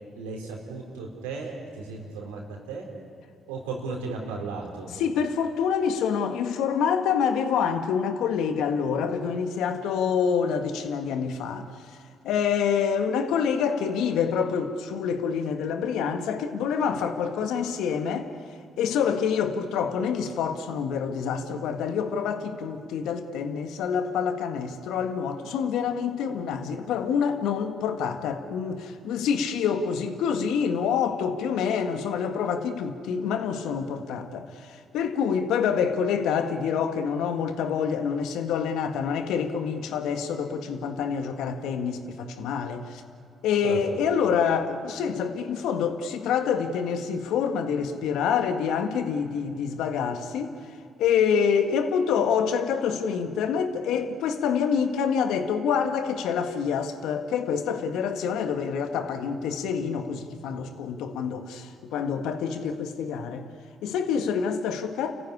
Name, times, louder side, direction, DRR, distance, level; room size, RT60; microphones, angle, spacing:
voice 1, 0.1-2.4 2.7-2.9 3.5-4.9 43.6-43.8, right 4 dB, 90° right, 0 dB, 4.2 m, -35 dB
voice 2, 4.9-11.7 12.2-18.3 18.8-43.0 43.4-50.5 51.0-63.4 63.8-65.1, left 7 dB, 75° left, 7 dB, 1.7 m, -27 dB
29.5 x 15.0 x 9.8 m, 2.4 s
hypercardioid pair, 50°, 0 cm